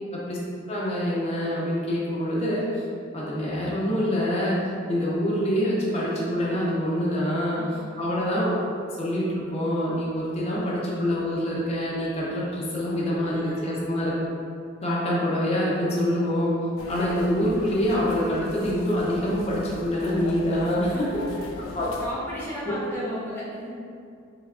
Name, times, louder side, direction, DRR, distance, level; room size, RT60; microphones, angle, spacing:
voice 1, 0.7-2.6 3.1-4.6 4.9-7.6 8.0-8.6 9.0-14.1 14.8-16.5 16.9-20.9 21.7-21.9, equal, 30° left, -6 dB, 0.5 m, -25 dB
voice 2, 7.5-7.9 13.2-13.7 20.8-21.4 21.8-23.8, equal, 10° left, -9 dB, 0.8 m, -35 dB
sound 1, 16.8-22.1, left 2 dB, 85° left, 0.4 m, -40 dB
3.3 x 3.3 x 2.4 m, 2.4 s
head